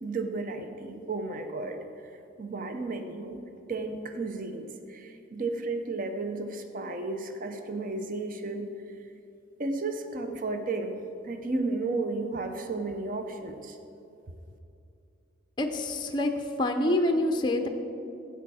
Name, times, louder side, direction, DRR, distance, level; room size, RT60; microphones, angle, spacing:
voice 1, 0.0-2.1 2.4-3.4 3.7-8.7 9.6-10.9 11.2-13.8, right 3 dB, 40° right, 6 dB, 0.6 m, -33 dB
voice 2, 15.6-16.3 16.6-17.7, left 1 dB, 20° left, 5 dB, 0.5 m, -26 dB
13.0 x 8.4 x 4.2 m, 2.7 s
head